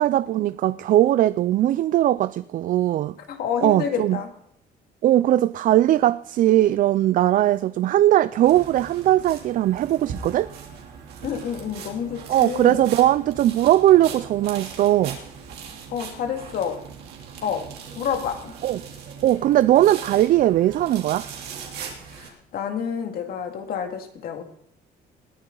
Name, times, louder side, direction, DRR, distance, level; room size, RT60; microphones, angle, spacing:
voice 1, 0.0-3.2 3.6-4.2 5.0-10.5 12.3-15.2 18.6-18.8 19.2-21.3, right 13 dB, 55° right, 0.4 m, -19 dB
voice 2, 3.3-4.3 11.2-12.9 15.9-16.9 17.4-18.5 22.1-24.4, left 7 dB, 65° left, 2.2 m, -29 dB
sound 1, 8.4-22.3, right 6 dB, 70° right, 3.0 m, -39 dB
20.0 x 9.7 x 3.9 m
cardioid pair, 110°, 17 cm